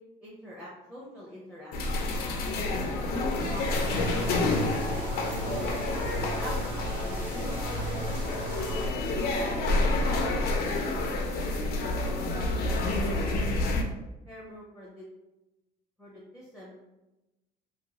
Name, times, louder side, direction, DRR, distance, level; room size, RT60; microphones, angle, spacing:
voice 1, 0.2-2.0 2.7-4.0 4.7-7.6 8.4-9.6 10.0-10.2 10.6-13.5 14.3-15.0 16.0-16.8, equal, 5° right, -7 dB, 0.7 m, -45 dB
sound 1, 1.7-13.8, left 2 dB, 65° left, 0.5 m, -29 dB
sound 2, 3.4-8.9, right 2 dB, 90° right, 1.3 m, -38 dB
3.0 x 2.1 x 2.8 m, 0.99 s
cardioid pair, 110°, 17 cm